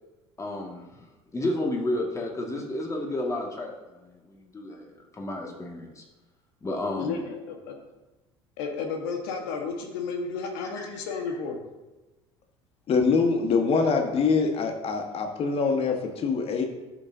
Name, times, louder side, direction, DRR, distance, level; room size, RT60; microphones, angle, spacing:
voice 1, 0.4-1.1 1.3-4.9 5.1-6.0 6.6-7.2 10.8-11.0, left 1 dB, 20° left, 0 dB, 2.1 m, -31 dB
voice 2, 7.0-7.8 8.6-11.6, left 4 dB, 60° left, 3 dB, 1.5 m, -32 dB
voice 3, 12.9-16.6, left 4 dB, 40° left, 4 dB, 1.5 m, -24 dB
11.5 x 7.6 x 2.8 m, 1.1 s
figure-of-eight pair, 60°, 15 cm